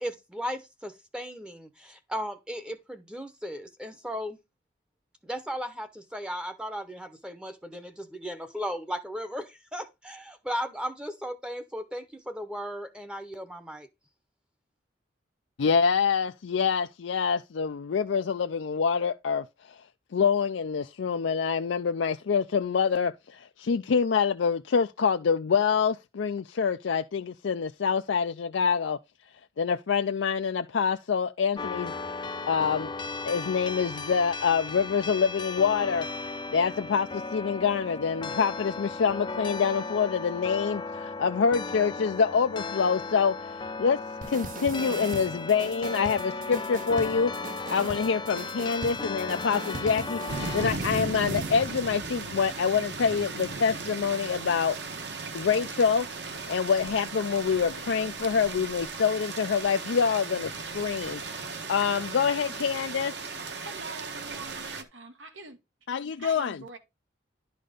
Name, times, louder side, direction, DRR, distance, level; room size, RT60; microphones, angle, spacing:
voice 1, 0.0-4.4 5.2-13.9, equal, 5° right, 0.7 m, -36 dB
voice 2, 15.6-19.4 20.1-29.0 29.6-32.1 32.5-32.9 33.2-44.0 44.3-47.3 47.7-54.8 55.3-56.1 56.5-63.1 65.9-66.6, left 6 dB, 75° left, 0.4 m, -26 dB
sound 1, 31.6-50.7, left 3 dB, 25° left, 0.5 m, -36 dB
sound 2, 44.2-51.6, right 3 dB, 45° right, 0.6 m, -40 dB
sound 3, 50.3-64.8, right 3 dB, 65° right, 1.3 m, -36 dB
voice 3, 63.6-65.6 66.2-66.8, right 3 dB, 90° right, 1.8 m, -44 dB
11.0 x 4.1 x 5.0 m
head